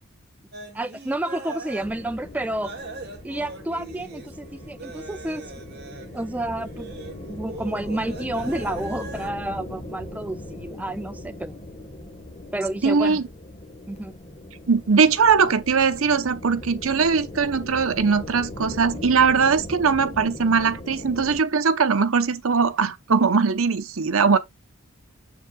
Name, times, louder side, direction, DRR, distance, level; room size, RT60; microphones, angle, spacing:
sound 1, 0.5-2.0 2.6-9.3, right 2 dB, 50° right, 2.3 m, -40 dB
voice 1, 0.7-2.8 3.2-5.5 6.1-6.9 7.3-11.5 12.5-13.2 13.9-14.1, right 1 dB, 5° right, 0.4 m, -30 dB
sound 2, 1.8-21.4, left 1 dB, 30° left, 1.4 m, -39 dB
voice 2, 12.8-13.2 14.7-24.4, right 5 dB, 75° right, 0.8 m, -20 dB
7.3 x 6.9 x 2.3 m
head